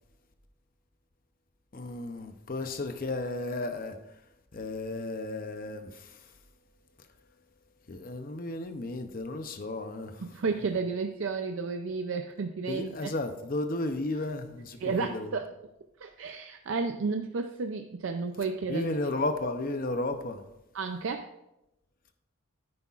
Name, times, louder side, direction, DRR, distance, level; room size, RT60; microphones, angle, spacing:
voice 1, 1.7-4.2 4.5-6.3 7.0-7.1 7.9-10.2 12.7-15.3 18.7-20.4, left 2 dB, 40° left, 0.6 m, -34 dB
voice 2, 10.2-13.1 14.8-15.5 16.0-18.9 20.7-21.3, right 4 dB, 60° right, 0.4 m, -32 dB
9.6 x 9.4 x 2.4 m
head